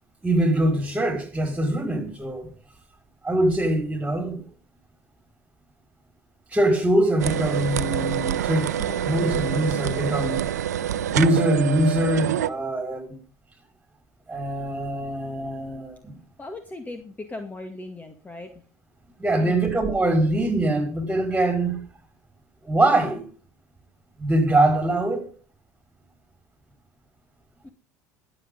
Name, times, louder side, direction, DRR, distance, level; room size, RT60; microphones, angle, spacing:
voice 1, 0.2-2.5 3.2-4.5 6.5-10.5 11.1-13.2 14.3-16.2 19.2-21.8 22.6-23.2 24.2-25.3, right 1 dB, 15° right, 5.4 m, -23 dB
sound 1, 7.2-12.5, right 10 dB, 80° right, 0.7 m, -26 dB
voice 2, 8.8-9.7 16.4-18.5 19.4-19.7 27.6-27.7, left 2 dB, 20° left, 2.0 m, -38 dB
22.0 x 7.8 x 3.9 m
hypercardioid pair, 70°, 9 cm